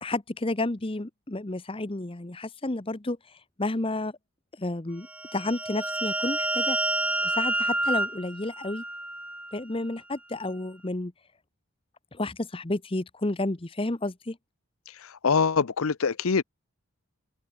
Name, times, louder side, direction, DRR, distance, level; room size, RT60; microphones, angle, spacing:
voice 1, 0.0-3.2 3.6-4.1 4.6-5.1 5.3-6.8 7.2-8.8 9.5-11.1 12.1-14.4, left 2 dB, 25° left, 0.9 m, -31 dB
sound 1, 5.1-9.6, right 1 dB, 5° right, 1.1 m, -29 dB
voice 2, 15.0-16.4, left 5 dB, 75° left, 0.7 m, -24 dB
open air
head